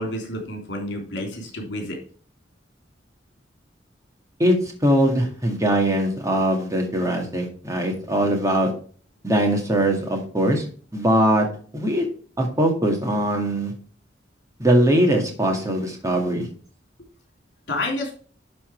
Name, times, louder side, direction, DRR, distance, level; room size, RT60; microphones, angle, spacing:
voice 1, 0.0-2.0 17.7-18.1, left 1 dB, 70° left, 2 dB, 3.4 m, -29 dB
voice 2, 4.8-8.7 9.2-10.7 10.9-11.5 11.7-12.1 12.4-13.7 14.6-16.5, right 1 dB, 20° right, 2 dB, 2.1 m, -21 dB
11.5 x 4.3 x 4.5 m, 0.43 s
head